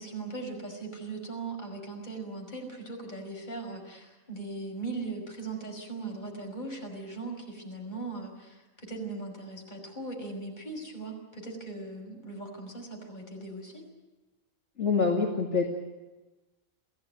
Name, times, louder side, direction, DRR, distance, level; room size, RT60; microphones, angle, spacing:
voice 1, 0.0-13.8, right 3 dB, 35° left, 1 dB, 5.7 m, -39 dB
voice 2, 14.8-15.7, left 4 dB, 55° left, 0 dB, 2.6 m, -25 dB
27.5 x 16.5 x 9.3 m, 1.1 s
omnidirectional pair, 1.4 m